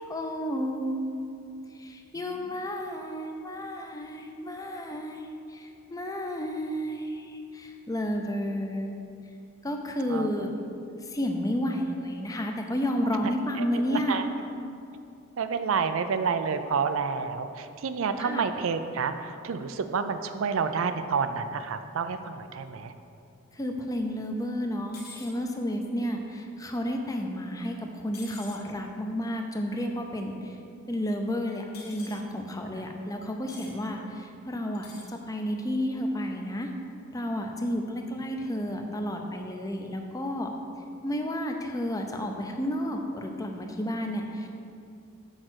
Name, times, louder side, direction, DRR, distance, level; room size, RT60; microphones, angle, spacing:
voice 1, 0.0-1.3 1.7-8.9 9.6-10.5 11.0-14.2 18.2-18.4 23.5-30.6 30.9-36.7 37.1-40.5 41.0-44.5, equal, 15° left, 3 dB, 0.6 m, -31 dB
voice 2, 10.1-10.5 13.6-14.3 15.4-22.9, right 5 dB, 70° right, 10 dB, 0.4 m, -29 dB
sound 1, 24.9-25.3 28.1-28.6 31.7-32.2 33.5-33.7 34.7-35.1, left 4 dB, 45° left, 1.2 m, -46 dB
6.4 x 5.0 x 6.1 m, 2.6 s
head